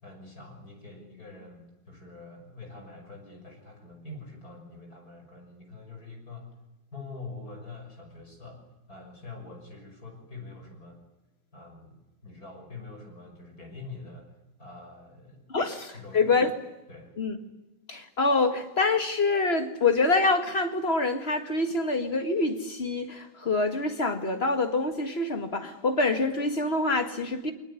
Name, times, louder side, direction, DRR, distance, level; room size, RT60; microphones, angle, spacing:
voice 1, 0.0-6.5 6.9-8.6 8.9-11.0 11.5-14.3 14.6-16.2 16.9-17.1, left 3 dB, 55° left, 6.6 m, -45 dB
voice 2, 15.5-16.5 17.2-17.4 17.9-27.5, left 3 dB, 35° left, 2.1 m, -26 dB
24.0 x 19.5 x 9.8 m
omnidirectional pair, 2.0 m